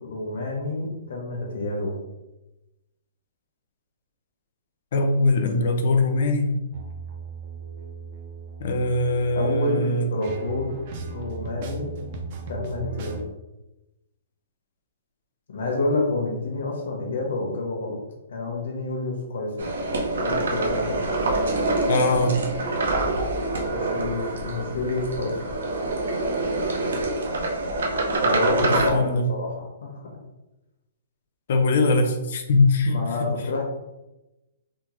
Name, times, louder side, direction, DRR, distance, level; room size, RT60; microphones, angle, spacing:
voice 1, 0.0-2.0 9.4-10.7 11.1-11.9 12.5-13.2 15.5-18.0 18.3-19.7 20.1-21.0 23.7-25.4 28.2-30.0 32.9-33.6, left 2 dB, 65° left, -1 dB, 0.9 m, -28 dB
voice 2, 4.9-6.6 8.6-10.1 21.9-22.4 28.6-29.2 31.5-33.0, left 2 dB, 50° left, 5 dB, 0.5 m, -21 dB
sound 1, 6.7-13.2, right 4 dB, 35° right, 0.4 m, -37 dB
sound 2, 19.6-28.9, right 2 dB, 80° right, 0.7 m, -25 dB
3.6 x 2.1 x 3.0 m, 0.99 s
hypercardioid pair, 175°, 0 cm